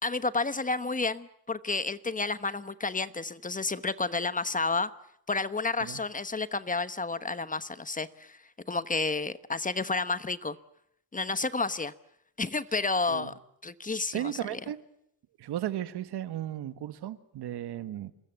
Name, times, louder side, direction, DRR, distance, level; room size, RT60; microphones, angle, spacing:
voice 1, 0.0-4.9 5.3-8.4 8.7-10.6 11.1-11.9 12.4-13.3 13.6-14.6, left 3 dB, 20° left, 14 dB, 1.1 m, -31 dB
voice 2, 14.1-14.8 15.4-18.1, right 12 dB, 85° right, 12 dB, 1.7 m, -35 dB
27.5 x 21.5 x 7.9 m, 0.75 s
cardioid pair, 115°, 39 cm